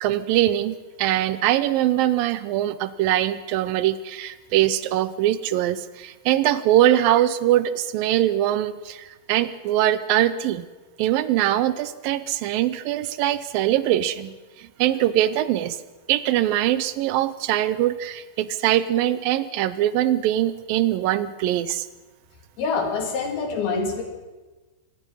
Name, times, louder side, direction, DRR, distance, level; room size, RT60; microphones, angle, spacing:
voice 1, 0.0-10.7 11.0-15.8 16.1-21.9, right 13 dB, 75° right, 15 dB, 2.4 m, -22 dB
voice 2, 22.6-24.0, left 4 dB, 80° left, 4 dB, 4.8 m, -25 dB
25.0 x 20.0 x 5.6 m, 1.2 s
omnidirectional pair, 4.3 m